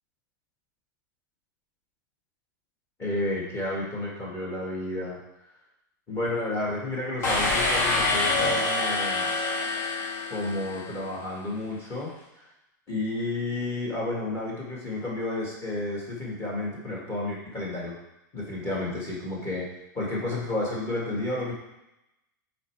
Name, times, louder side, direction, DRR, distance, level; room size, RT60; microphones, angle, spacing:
voice 1, 3.0-5.2 6.1-9.3 10.3-12.1 12.4-12.5 12.9-17.9 18.3-19.7 19.9-21.5, left 2 dB, 25° left, -4 dB, 1.8 m, -31 dB
sound 1, 7.2-11.0, left 2 dB, 70° left, 1.9 m, -26 dB
5.5 x 4.4 x 4.6 m, 0.89 s
supercardioid pair, 150°, 11 cm